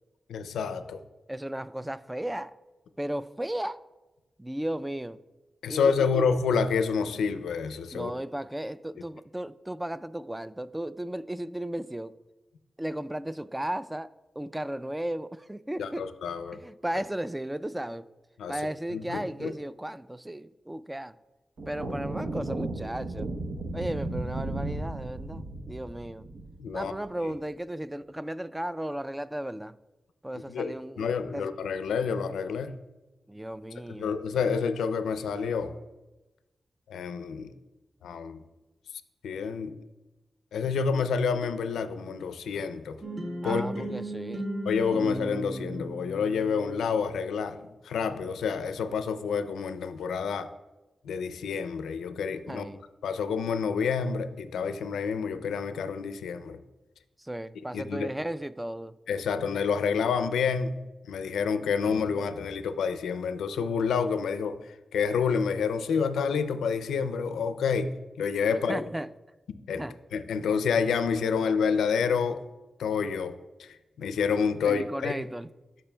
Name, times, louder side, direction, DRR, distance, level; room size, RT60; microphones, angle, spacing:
voice 1, 0.3-1.0 5.6-8.1 15.8-16.6 18.4-18.6 18.9-19.5 26.6-26.9 27.2-27.3 30.5-32.7 33.9-35.7 36.9-37.5 38.0-38.4 39.2-39.7 40.5-43.0 43.4-43.9 44.7-47.6 47.8-50.5 51.0-52.7 53.0-56.6 57.7-58.1 59.1-60.8 61.1-64.6 64.9-67.9 68.2-68.8 69.7-69.8 70.1-72.4 72.8-73.7 74.0-75.2, left 6 dB, 90° left, 0.4 m, -28 dB
voice 2, 1.3-2.6 3.0-3.8 4.4-5.2 5.7-6.3 7.9-12.1 12.8-14.1 14.4-16.1 16.5-18.1 18.5-21.1 21.7-23.3 23.7-26.3 26.7-29.8 30.2-31.1 31.3-31.5 33.3-34.2 43.4-44.5 52.5-52.8 57.2-59.0 68.7-69.1 69.8-70.0 74.6-75.5, right 1 dB, 15° right, 0.3 m, -35 dB
sound 1, 21.6-27.2, right 2 dB, 75° right, 0.8 m, -35 dB
sound 2, 43.0-47.0, right 1 dB, 50° right, 1.2 m, -36 dB
13.0 x 5.3 x 2.2 m
supercardioid pair, 40°, 0 cm